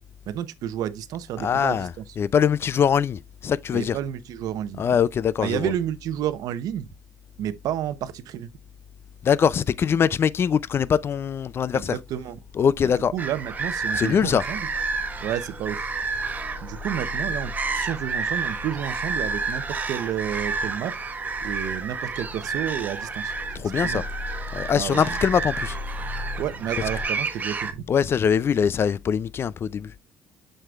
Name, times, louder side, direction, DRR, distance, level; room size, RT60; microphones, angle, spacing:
voice 1, 0.3-2.1 3.7-4.8 5.4-6.9 7.4-8.5 11.7-12.4 12.8-14.7 15.2-15.8 16.6-20.9 21.4-23.3 23.8-24.0 24.7-25.2 26.4-27.8, right 10 dB, 70° right, 0.8 m, -31 dB
voice 2, 1.4-1.9 2.2-4.0 4.8-5.7 9.2-12.0 12.6-13.1 14.0-14.4 23.5-24.0 24.5-25.8 27.9-29.9, left 7 dB, 40° left, 0.4 m, -22 dB
sound 1, 12.0-27.0, left 3 dB, 75° left, 3.8 m, -39 dB
sound 2, 13.2-27.7, right 4 dB, 25° right, 1.0 m, -30 dB
7.7 x 6.7 x 2.3 m
cardioid pair, 115°, 6 cm